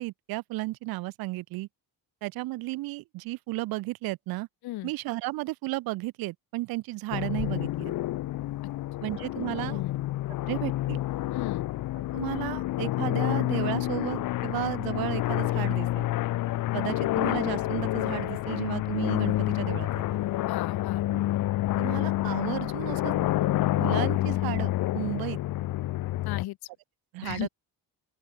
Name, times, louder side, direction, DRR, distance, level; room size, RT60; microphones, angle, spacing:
voice 1, 0.0-1.7 2.2-4.5 4.8-7.9 9.0-9.8 10.5-11.0 12.1-16.1 16.7-20.2 21.1-21.2 21.8-23.3 23.8-25.4 27.1-27.5, right 19 dB, 75° right, 0.6 m, -33 dB
sound 1, 7.1-26.5, left 15 dB, 60° left, 0.8 m, -28 dB
voice 2, 11.3-11.7 20.5-21.1 26.2-26.6 27.2-27.5, left 17 dB, 85° left, 2.2 m, -35 dB
open air
cardioid pair, 135°, 36 cm